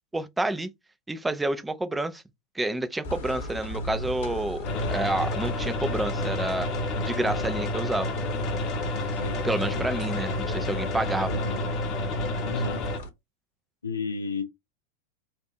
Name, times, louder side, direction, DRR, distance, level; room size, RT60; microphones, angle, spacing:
voice 1, 0.1-0.7 1.1-2.2 2.5-6.7 7.0-8.1 9.4-11.4, right 2 dB, 10° right, 0.6 m, -29 dB
sound 1, 3.0-13.1, left 1 dB, 55° left, 1.6 m, -38 dB
Keyboard (musical), 3.7-5.9, right 2 dB, 50° right, 1.3 m, -41 dB
sound 2, 4.6-13.0, left 2 dB, 35° left, 1.1 m, -30 dB
voice 2, 9.1-9.9 11.3-11.6 12.4-12.9 13.8-14.4, left 4 dB, 75° left, 0.7 m, -33 dB
4.3 x 2.7 x 4.1 m
figure-of-eight pair, 90°, 0 cm